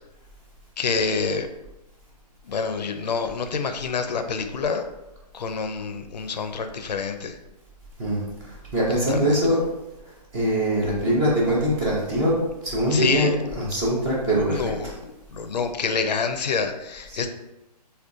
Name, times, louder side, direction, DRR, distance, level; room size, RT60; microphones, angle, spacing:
voice 1, 0.8-1.5 2.4-4.9 5.3-7.4 9.1-9.4 12.9-13.3 14.4-17.3, left 5 dB, 85° left, 8 dB, 0.4 m, -27 dB
voice 2, 8.0-9.6 10.3-12.3 12.6-13.3 13.6-14.6, equal, 10° right, -5 dB, 0.3 m, -22 dB
3.7 x 2.2 x 2.5 m, 0.95 s
hypercardioid pair, 150°, 21 cm